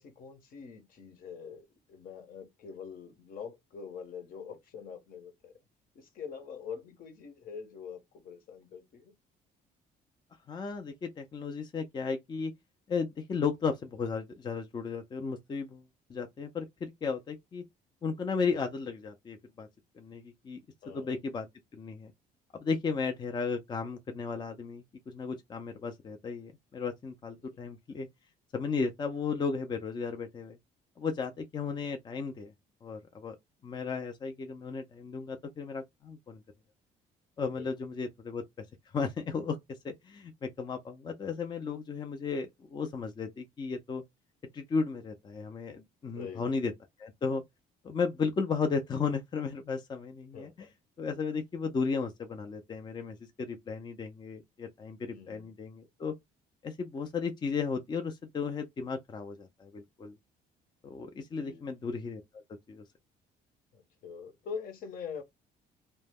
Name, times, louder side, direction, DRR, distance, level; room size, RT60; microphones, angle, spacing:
voice 1, 0.0-5.5 5.9-9.1 20.8-21.1 27.4-27.6 37.5-37.7 46.1-46.6 50.3-50.7 55.1-55.5 61.0-61.6 63.7-65.2, left 6 dB, 60° left, 0.9 m, -44 dB
voice 2, 10.5-12.5 12.9-15.8 16.1-17.6 18.0-19.7 20.0-20.6 20.9-21.5 21.7-22.1 22.6-28.1 28.5-30.6 31.0-32.5 32.8-33.4 33.6-36.4 37.4-38.4 38.9-39.6 39.8-44.0 44.5-46.7 47.0-47.4 47.8-50.7 51.0-56.1 56.6-60.2 60.8-62.4 62.7-62.8, left 5 dB, 25° left, 0.4 m, -34 dB
2.2 x 2.0 x 3.4 m
cardioid pair, 110°, 17 cm